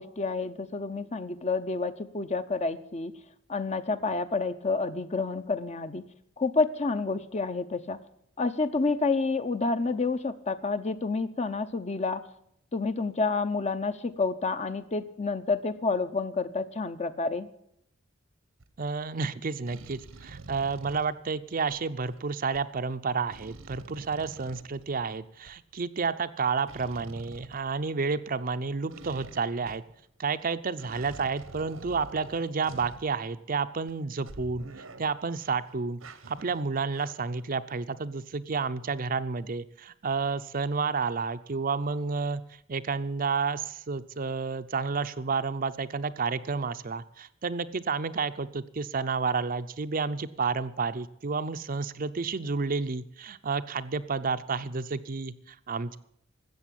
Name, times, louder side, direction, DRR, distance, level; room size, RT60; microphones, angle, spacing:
voice 1, 0.0-3.1 3.5-6.0 6.4-8.0 8.4-12.2 12.7-17.5, left 3 dB, 35° left, 11 dB, 0.7 m, -29 dB
sound 1, 18.6-18.9 19.7-22.2 22.5-22.6 23.3-25.5 26.7-28.3 28.9-30.0 30.4-30.5 30.8-33.5 33.9-34.0 34.3-35.5 36.0-37.4 37.7-37.8, right 2 dB, 90° right, 1.3 m, -47 dB
voice 2, 18.8-29.8 30.2-34.7 35.0-36.0 36.3-42.4 42.7-56.0, right 4 dB, 45° right, 11 dB, 0.6 m, -30 dB
13.5 x 8.1 x 10.0 m, 0.72 s
head